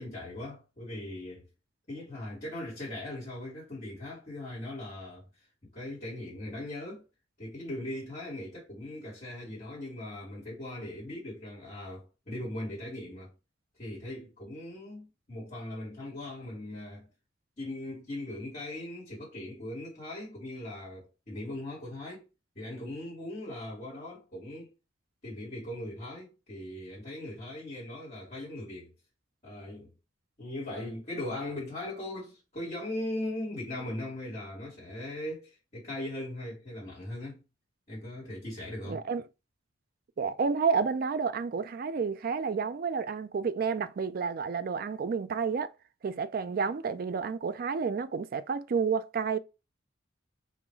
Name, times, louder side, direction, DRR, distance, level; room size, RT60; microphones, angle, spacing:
voice 1, 0.0-1.5 1.9-5.3 5.6-7.0 7.4-13.3 13.8-17.1 17.6-22.3 22.5-24.7 25.2-28.9 29.4-29.9 30.4-37.4 37.9-39.0, left 1 dB, 35° left, 1.7 m, -39 dB
voice 2, 38.8-39.2 40.2-45.7 46.0-49.4, right 5 dB, 45° right, 0.3 m, -30 dB
3.6 x 2.5 x 4.4 m
head